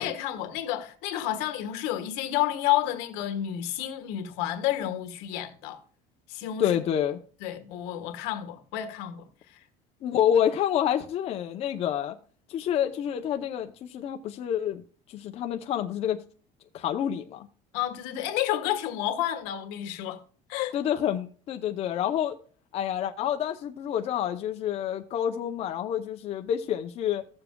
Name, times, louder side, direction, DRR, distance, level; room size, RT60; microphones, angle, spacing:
voice 1, 0.0-5.8 6.3-6.8 7.4-9.6 17.7-20.2 20.5-20.7, left 12 dB, 85° left, 1.5 m, -30 dB
voice 2, 6.6-7.2 10.0-12.2 12.5-14.8 15.1-16.2 16.7-17.5 20.7-22.4 22.7-27.3, left 10 dB, 40° left, 0.6 m, -28 dB
15.5 x 7.0 x 2.2 m
cardioid pair, 170°, 16 cm